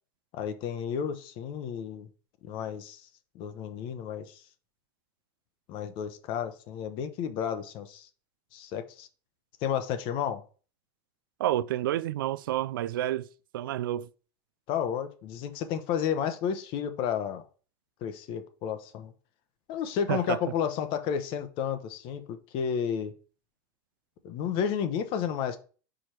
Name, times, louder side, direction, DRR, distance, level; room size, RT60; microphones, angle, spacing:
voice 1, 0.3-2.1 2.4-3.0 3.3-4.4 5.7-8.1 8.5-9.1 9.6-10.4 14.7-17.4 18.0-19.1 19.7-23.1 24.2-25.6, left 8 dB, 50° left, 0.8 m, -32 dB
voice 2, 11.4-13.3 13.5-14.1 20.1-20.4, right 13 dB, 90° right, 0.4 m, -29 dB
4.9 x 4.4 x 4.5 m
supercardioid pair, 120°, 11 cm